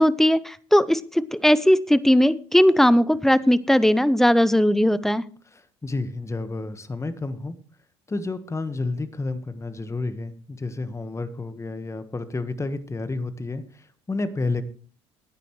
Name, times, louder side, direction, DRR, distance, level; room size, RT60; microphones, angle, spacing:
voice 1, 0.0-5.2, equal, ahead, 18 dB, 0.7 m, -18 dB
voice 2, 5.5-7.5 8.1-14.6, left 3 dB, 20° left, 11 dB, 1.5 m, -30 dB
15.5 x 9.9 x 3.2 m, 0.42 s
hypercardioid pair, 65°, 15 cm